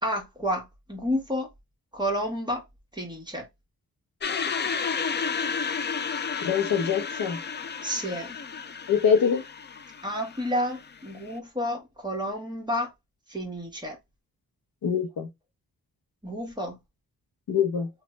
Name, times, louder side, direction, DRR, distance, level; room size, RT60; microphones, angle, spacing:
voice 1, 0.0-1.5 1.9-2.6 2.9-3.4 7.8-8.3 10.0-12.9 13.3-14.0 16.2-16.8, equal, 10° right, 1.3 m, -30 dB
sound 1, 4.2-11.3, left 5 dB, 30° left, 0.4 m, -32 dB
voice 2, 6.4-7.4 8.9-9.4 14.8-15.3 17.5-17.9, left 7 dB, 75° left, 0.8 m, -24 dB
3.1 x 2.4 x 3.0 m
wide cardioid pair, 90°, 36 cm